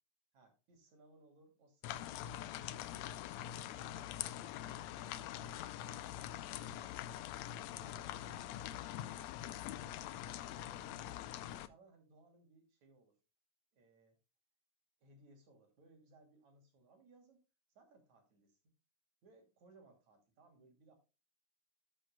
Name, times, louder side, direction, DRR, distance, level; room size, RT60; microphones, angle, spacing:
voice 1, 0.3-3.3 3.6-4.2 5.0-7.4 7.7-9.2 9.8-10.3 10.5-11.2 11.6-13.2 13.7-14.2 15.0-17.5 17.8-18.7 19.2-20.9, right 2 dB, 65° right, 3 dB, 3.9 m, -65 dB
sound 1, 1.8-11.7, left 12 dB, 80° left, 1.7 m, -44 dB
14.0 x 7.6 x 2.2 m, 0.30 s
omnidirectional pair, 3.6 m